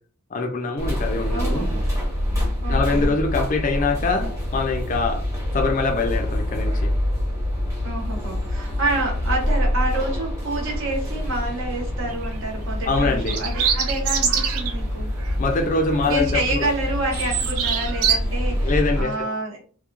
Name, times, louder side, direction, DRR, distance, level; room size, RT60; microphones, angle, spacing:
voice 1, 0.3-1.7 2.7-5.2 5.5-6.9 12.9-13.4 15.4-16.7 18.6-19.3, left 3 dB, 35° left, 0.3 m, -24 dB
sound 1, 0.8-19.0, left 1 dB, 15° right, 1.0 m, -26 dB
voice 2, 1.3-1.8 2.6-3.1 7.8-15.1 16.1-19.6, right 2 dB, 60° right, 1.0 m, -28 dB
sound 2, 12.1-12.4 13.2-14.8 15.2-15.3 15.8-16.5 16.8-18.2, right 7 dB, 80° right, 0.5 m, -24 dB
2.9 x 2.2 x 2.3 m
head